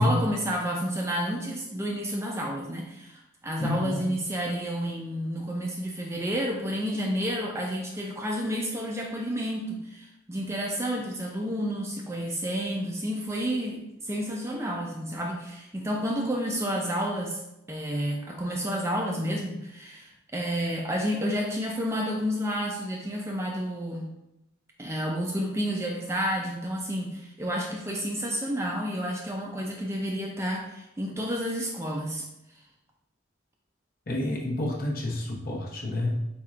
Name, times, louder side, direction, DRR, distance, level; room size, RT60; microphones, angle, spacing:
voice 1, 0.0-17.4 17.7-24.1 24.8-32.2, equal, 15° right, 0 dB, 0.4 m, -30 dB
voice 2, 3.6-4.1 34.1-36.3, left 1 dB, 45° left, -1 dB, 0.8 m, -28 dB
4.3 x 4.2 x 2.4 m, 0.88 s
head